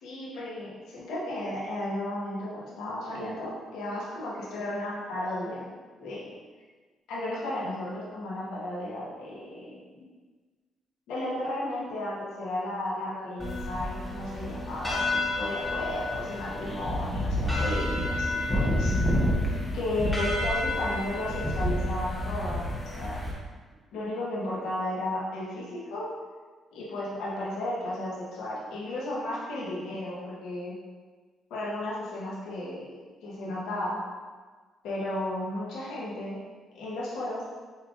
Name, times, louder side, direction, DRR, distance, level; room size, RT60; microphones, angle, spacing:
voice 1, 0.0-6.3 7.1-10.0 11.1-15.0 15.3-18.9 19.7-23.2 23.9-26.1 26.7-30.7 31.5-32.9 33.2-34.0 34.8-36.4 36.7-37.4, left 1 dB, 90° left, -7 dB, 1.2 m, -34 dB
sound 1, 13.4-23.3, left 1 dB, 5° left, 0.9 m, -29 dB
5.5 x 3.4 x 2.5 m, 1.4 s
cardioid pair, 90°, 0 cm